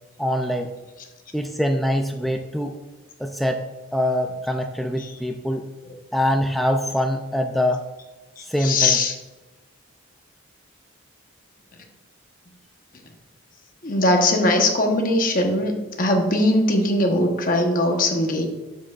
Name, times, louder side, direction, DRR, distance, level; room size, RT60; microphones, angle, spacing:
voice 1, 0.2-0.7 1.3-2.8 3.2-3.6 3.9-5.7 6.1-7.8 8.5-9.0, equal, ahead, 4 dB, 0.3 m, -24 dB
voice 2, 8.4-9.1 13.8-18.5, left 1 dB, 40° left, 3 dB, 1.0 m, -20 dB
8.9 x 7.4 x 2.4 m, 1.1 s
head